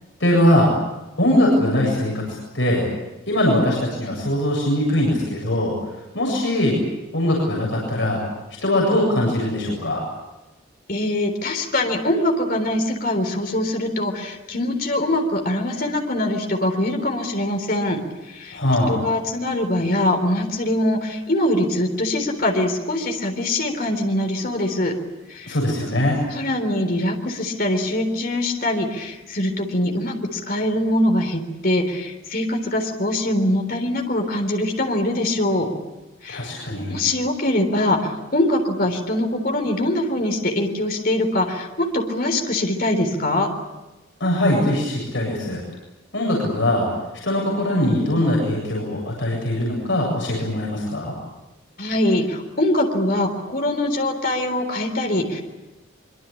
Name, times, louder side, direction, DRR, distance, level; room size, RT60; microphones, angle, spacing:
voice 1, 0.2-0.7 1.2-2.2 2.5-2.9 3.3-5.8 6.1-6.8 7.1-8.2 8.6-10.0 18.5-19.0 25.5-26.2 36.3-37.0 44.2-45.6 46.1-46.9 47.2-51.1, left 1 dB, 65° left, -2 dB, 7.9 m, -21 dB
voice 2, 10.9-18.0 18.3-18.6 18.9-24.9 25.3-25.5 26.3-35.7 36.2-36.5 36.9-43.5 51.8-55.4, left 1 dB, 45° left, 3 dB, 3.8 m, -23 dB
25.0 x 24.5 x 8.6 m, 1.0 s
head